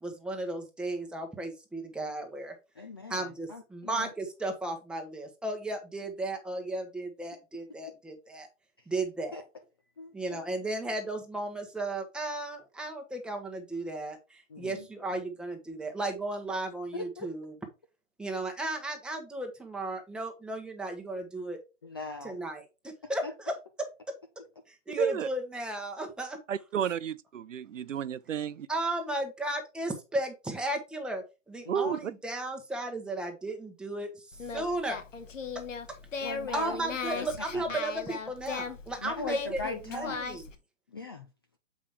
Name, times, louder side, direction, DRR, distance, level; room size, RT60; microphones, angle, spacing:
voice 1, 0.0-2.5 3.1-8.5 8.9-9.4 10.1-17.5 18.2-21.6 22.2-23.5 24.9-26.4 28.7-34.3 34.5-35.0 36.2-36.3 36.5-40.4, right 2 dB, ahead, 1.0 m, -35 dB
voice 2, 2.8-4.1 9.3-9.4 10.0-10.4 14.5-14.9 16.9-17.3 21.8-22.4 23.2-23.3 31.7-31.8 36.2-36.8 37.1-37.3 37.5-37.8 39.0-40.2 40.9-41.3, left 3 dB, 20° left, 0.3 m, -39 dB
voice 3, 24.9-25.3 26.5-28.7 31.7-32.1, right 8 dB, 75° right, 0.6 m, -32 dB
Singing, 34.3-40.6, left 5 dB, 75° left, 1.3 m, -38 dB
7.3 x 4.9 x 3.5 m
figure-of-eight pair, 125°, 38 cm